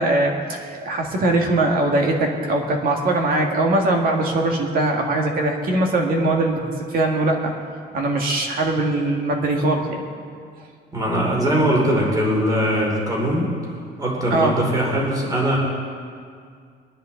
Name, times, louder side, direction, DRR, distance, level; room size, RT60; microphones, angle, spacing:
voice 1, 0.0-7.5 7.9-10.0 14.3-14.5, right 2 dB, 55° right, 1 dB, 1.9 m, -21 dB
voice 2, 10.9-13.5 14.0-15.6, equal, 20° right, -2 dB, 2.7 m, -21 dB
22.0 x 10.0 x 3.9 m, 2.2 s
cardioid pair, 175°, 18 cm